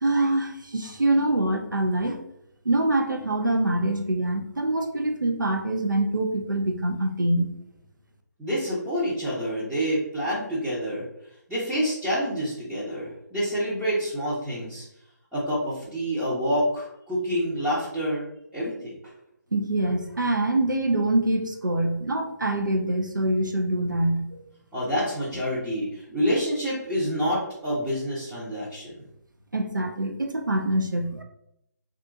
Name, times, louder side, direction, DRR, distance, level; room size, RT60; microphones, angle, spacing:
voice 1, 0.0-2.2 2.6-7.5 19.5-24.4 29.5-31.2, right 1 dB, 85° right, 4 dB, 0.6 m, -25 dB
voice 2, 8.4-11.0 11.5-14.9 15.3-18.2 18.5-18.9 24.7-28.9, equal, 5° right, -12 dB, 0.6 m, -27 dB
2.8 x 2.4 x 3.5 m, 0.78 s
figure-of-eight pair, 145°, 10 cm